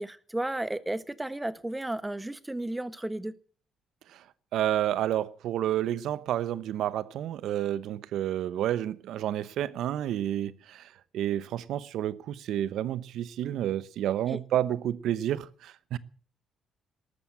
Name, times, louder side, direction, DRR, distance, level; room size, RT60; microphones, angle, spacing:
voice 1, 0.0-3.3 14.3-14.4, right 1 dB, 10° right, 1.3 m, -33 dB
voice 2, 4.5-16.0, right 11 dB, 80° right, 0.9 m, -30 dB
13.5 x 13.0 x 7.9 m
cardioid pair, 90°, 0 cm